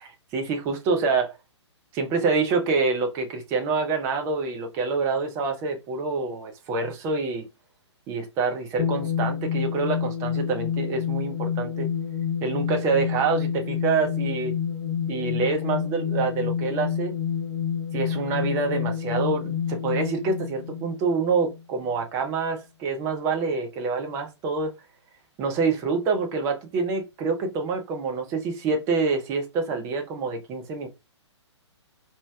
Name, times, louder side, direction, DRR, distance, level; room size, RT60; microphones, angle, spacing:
voice 1, 0.3-1.4 1.9-7.4 8.1-11.9 12.4-14.5 15.1-17.1 17.9-24.7 25.4-30.9, right 4 dB, 20° right, 0.6 m, -26 dB
sound 1, 8.8-21.6, left 8 dB, 25° left, 0.6 m, -28 dB
4.1 x 2.9 x 2.2 m
figure-of-eight pair, 125°, 15 cm